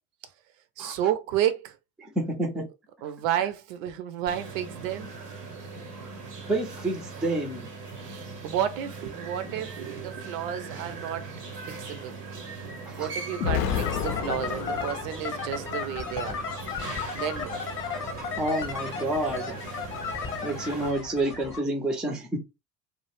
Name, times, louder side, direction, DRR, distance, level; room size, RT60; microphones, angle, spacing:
voice 1, 0.8-1.7 2.6-2.7 3.0-5.1 8.0-11.3 11.7-16.4 17.1-17.6, right 10 dB, 60° right, 0.5 m, -31 dB
voice 2, 2.0-2.7 6.5-7.7 12.9-13.1 17.9-19.6 20.4-22.4, right 1 dB, ahead, 0.4 m, -29 dB
sound 1, 4.3-20.9, right 4 dB, 85° right, 0.8 m, -40 dB
Explosion, 13.4-15.5, left 8 dB, 75° left, 0.6 m, -30 dB
sound 2, 13.7-21.6, left 6 dB, 25° left, 0.8 m, -35 dB
2.3 x 2.0 x 3.1 m
figure-of-eight pair, 65°, 47 cm